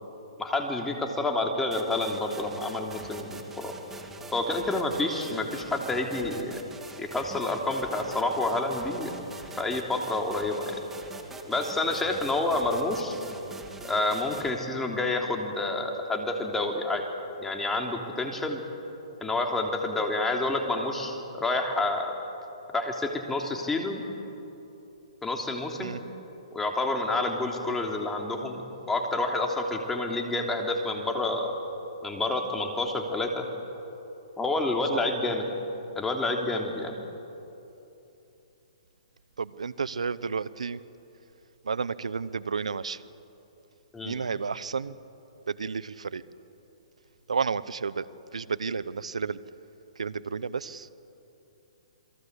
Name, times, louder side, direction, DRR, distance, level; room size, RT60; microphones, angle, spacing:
voice 1, 0.4-3.7 4.3-6.6 7.0-9.1 9.6-10.8 11.5-13.2 13.9-17.0 17.4-18.6 19.2-22.1 22.7-24.1 25.2-26.0 26.5-28.6 28.9-31.6 32.0-33.5 34.4-35.5 35.9-36.9 43.9-44.2, left 2 dB, 10° left, 2 dB, 3.2 m, -28 dB
sound 1, 1.7-14.5, right 3 dB, 10° right, 2.4 m, -44 dB
voice 2, 39.4-40.8 41.6-43.0 44.0-45.0 45.5-46.2 47.3-48.1 48.3-49.4 50.0-50.9, right 5 dB, 90° right, 17 dB, 0.9 m, -31 dB
28.5 x 22.0 x 8.2 m, 2.9 s
hypercardioid pair, 145°, 3 cm